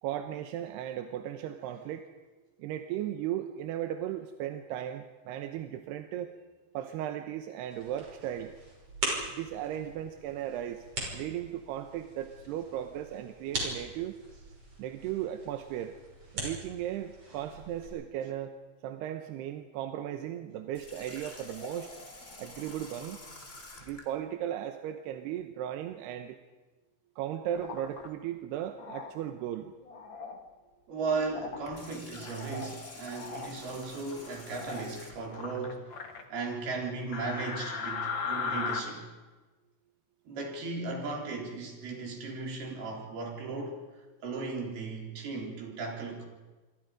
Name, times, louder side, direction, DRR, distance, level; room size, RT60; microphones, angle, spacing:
voice 1, 0.0-2.1 2.6-6.3 6.7-8.5 9.3-10.9 11.1-14.2 14.8-16.0 16.3-18.5 18.8-21.9 22.4-23.2 23.8-26.4 27.2-29.7, right 11 dB, 75° right, 6 dB, 2.8 m, -36 dB
sound 1, 7.7-17.9, right 2 dB, 30° right, 6.6 m, -41 dB
Water tap faucet, 20.7-24.1 31.5-35.4, left 2 dB, 20° left, 2.4 m, -48 dB
sound 2, 27.5-28.1 28.8-29.1 29.8-30.4 31.3-31.7 32.1-32.7 33.1-33.5 34.5-34.9 35.3-36.2 37.1-38.8, left 5 dB, 50° left, 1.5 m, -37 dB
voice 2, 30.9-36.0 36.3-39.1 40.3-43.8 44.2-46.2, right 4 dB, 60° right, 0 dB, 5.8 m, -36 dB
27.5 x 24.5 x 5.1 m, 1.2 s
omnidirectional pair, 5.2 m